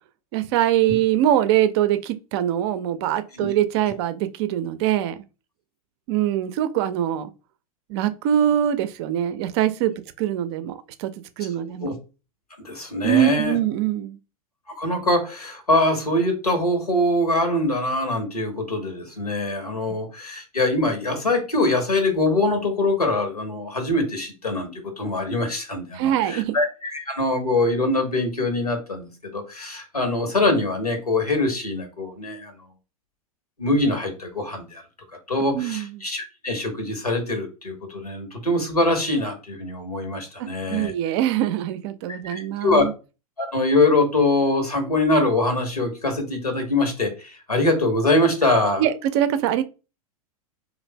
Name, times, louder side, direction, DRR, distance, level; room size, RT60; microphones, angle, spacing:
voice 1, 0.3-5.2 6.1-7.3 7.9-11.1 11.4-11.9 13.0-14.2 25.9-26.6 35.5-36.0 40.7-42.9 48.8-49.6, right 11 dB, 45° right, 0.4 m, -23 dB
voice 2, 12.6-13.6 14.8-32.5 33.6-34.8 35.3-40.9 42.1-42.8 43.4-48.8, left 2 dB, 90° left, 1.2 m, -23 dB
3.1 x 2.5 x 3.2 m
figure-of-eight pair, 95°, 19 cm